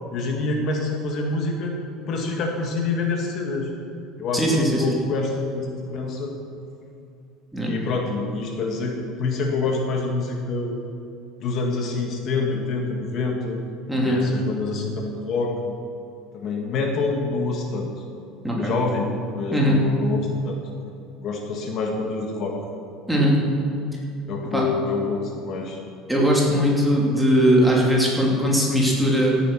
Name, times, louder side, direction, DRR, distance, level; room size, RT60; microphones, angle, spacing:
voice 1, 0.1-1.8 2.1-3.7 4.2-6.4 7.6-10.7 11.4-13.7 14.0-15.7 16.3-17.9 18.5-19.1 19.4-20.6 21.2-22.6 24.3-25.8, left 3 dB, 45° left, 2 dB, 1.6 m, -26 dB
voice 2, 4.3-4.9 7.5-7.7 13.9-14.2 18.4-18.7 19.5-19.8 23.1-23.4 24.5-24.7 26.1-29.4, equal, ahead, -3 dB, 2.7 m, -19 dB
15.5 x 9.1 x 6.1 m, 2.6 s
cardioid pair, 155°, 0 cm